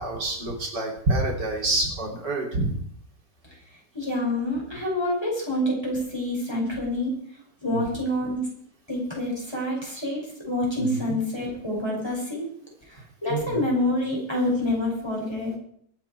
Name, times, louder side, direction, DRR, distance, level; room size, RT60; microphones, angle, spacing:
voice 1, 0.0-2.8 7.7-7.8 10.8-11.0 13.3-13.6, right 2 dB, 85° right, 0 dB, 3.8 m, -27 dB
voice 2, 3.9-7.2 7.6-8.5 8.9-12.5 12.9-15.6, left 1 dB, 15° left, -3 dB, 5.6 m, -27 dB
23.0 x 8.2 x 4.5 m, 0.65 s
omnidirectional pair, 1.8 m